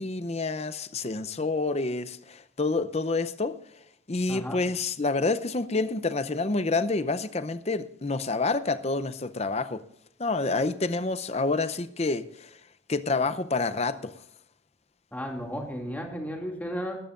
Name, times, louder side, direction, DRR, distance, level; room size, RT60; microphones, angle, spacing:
voice 1, 0.0-3.6 4.1-9.8 10.2-12.5 12.9-14.1, left 3 dB, 30° left, 0.6 m, -28 dB
voice 2, 4.3-4.6 15.1-17.0, equal, 10° left, 2.4 m, -34 dB
19.5 x 12.0 x 2.5 m
head